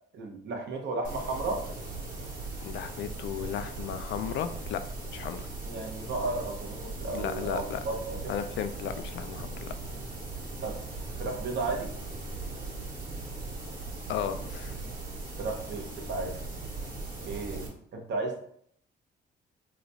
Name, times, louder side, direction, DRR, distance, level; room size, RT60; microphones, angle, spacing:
voice 1, 0.1-1.6 5.6-8.4 10.6-10.8 11.2-11.9 15.4-16.4 17.2-18.4, right 3 dB, 65° right, 2 dB, 0.9 m, -34 dB
sound 1, 1.0-17.7, right 3 dB, 45° right, 1.4 m, -39 dB
voice 2, 2.6-4.8 5.1-5.5 7.1-7.8 8.3-9.7 14.1-14.8, left 9 dB, 70° left, 9 dB, 0.4 m, -34 dB
3.0 x 2.2 x 3.9 m, 0.66 s
cardioid pair, 90°, 20 cm